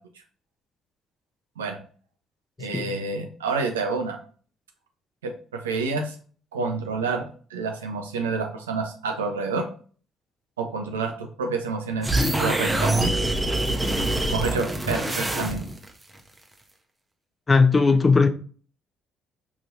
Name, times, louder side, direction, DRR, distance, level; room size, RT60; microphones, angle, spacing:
voice 1, 2.6-4.2 5.2-6.2 6.5-9.7 10.6-12.1 12.4-13.1 14.3-15.6, right 4 dB, 85° right, 0.5 m, -28 dB
sound 1, 12.0-15.9, right 1 dB, 15° right, 0.7 m, -24 dB
voice 2, 17.5-18.3, left 4 dB, 30° left, 0.5 m, -17 dB
4.9 x 2.6 x 2.6 m
figure-of-eight pair, 45°, 0 cm